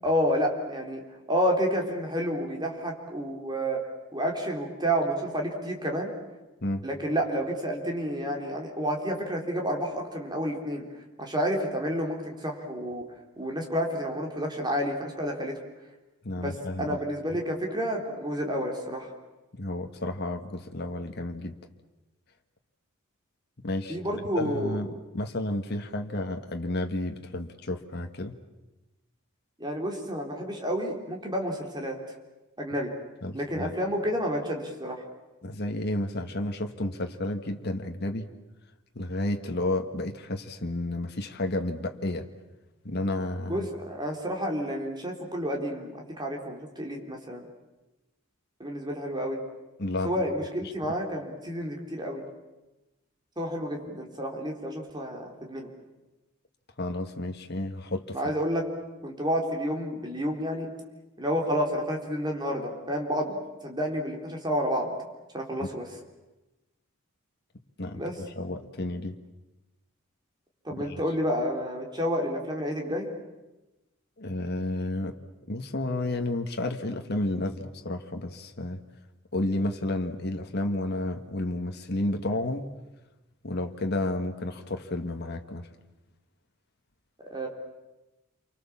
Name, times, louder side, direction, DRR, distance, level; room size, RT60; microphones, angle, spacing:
voice 1, 0.0-1.0 1.3-3.8 4.1-6.1 6.8-10.9 11.2-13.0 13.4-15.5 16.3-19.1 23.9-24.8 29.6-32.0 32.6-32.9 33.3-35.0 43.5-47.5 48.6-49.4 50.0-52.2 53.4-55.7 58.1-58.6 59.0-60.7 61.2-64.9 65.3-65.8 67.9-68.2 70.6-73.1 87.3-87.5, equal, 20° right, 1 dB, 3.8 m, -30 dB
voice 2, 16.2-17.0 19.5-21.6 23.6-28.4 33.2-33.8 35.4-38.3 38.9-42.3 42.8-43.7 49.8-50.2 50.6-50.9 56.8-58.2 65.6-65.7 67.8-69.2 70.9-71.0 74.2-75.2 75.5-78.8 79.3-82.7 83.4-85.7, left 1 dB, 50° left, 5 dB, 1.6 m, -31 dB
29.5 x 24.0 x 7.3 m, 1.1 s
head